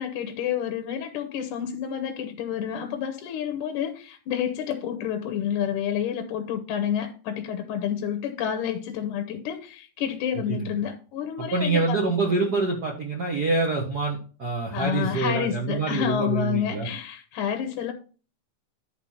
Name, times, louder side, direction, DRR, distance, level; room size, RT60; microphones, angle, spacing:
voice 1, 0.0-12.0 14.7-17.9, left 9 dB, 75° left, 6 dB, 2.3 m, -29 dB
voice 2, 10.5-10.8 11.4-16.9, right 3 dB, 50° right, -1 dB, 1.2 m, -26 dB
11.0 x 4.2 x 5.6 m, 0.37 s
omnidirectional pair, 3.8 m